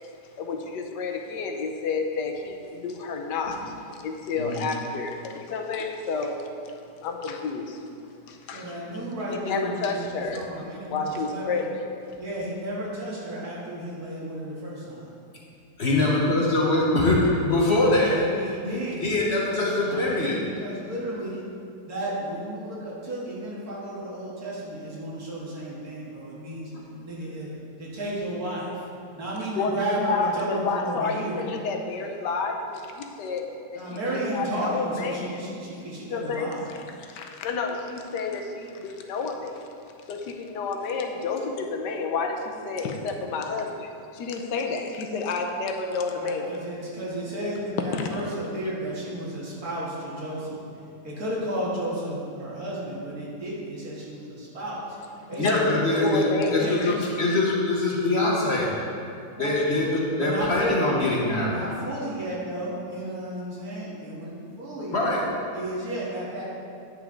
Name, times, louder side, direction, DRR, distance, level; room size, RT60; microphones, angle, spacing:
voice 1, 0.4-7.8 8.3-8.7 9.3-10.5 10.9-12.2 29.5-33.5 33.7-34.0 34.3-35.4 36.1-39.7 40.1-46.5 47.8-48.2 55.2-56.9, left 4 dB, 85° left, 3 dB, 1.4 m, -30 dB
voice 2, 8.5-11.6 12.2-15.1 17.8-19.1 19.9-21.4 21.9-26.7 27.0-27.5 27.8-28.8 29.2-31.4 33.7-36.7 46.1-50.6 51.0-54.8 55.3-56.0 56.4-57.1 59.4-59.8 60.1-61.1 61.4-65.0 65.5-66.5, right 1 dB, 60° right, -6 dB, 2.3 m, -33 dB
voice 3, 15.8-18.2 19.0-20.4 55.4-58.7 59.4-61.6 64.9-65.3, left 2 dB, 45° left, -3 dB, 1.2 m, -23 dB
9.9 x 6.1 x 3.8 m, 2.6 s
omnidirectional pair, 1.8 m